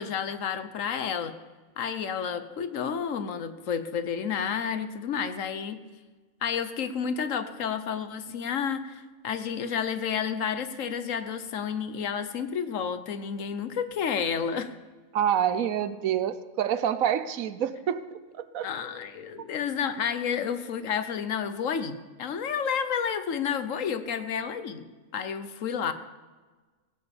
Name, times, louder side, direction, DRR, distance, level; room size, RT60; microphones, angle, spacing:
voice 1, 0.0-1.4 1.8-5.8 6.4-14.7 18.6-24.9 25.1-25.9, left 7 dB, 70° left, 11 dB, 1.3 m, -30 dB
voice 2, 15.1-18.7, right 9 dB, 80° right, 13 dB, 1.2 m, -27 dB
17.0 x 7.0 x 8.7 m, 1.3 s
omnidirectional pair, 1.4 m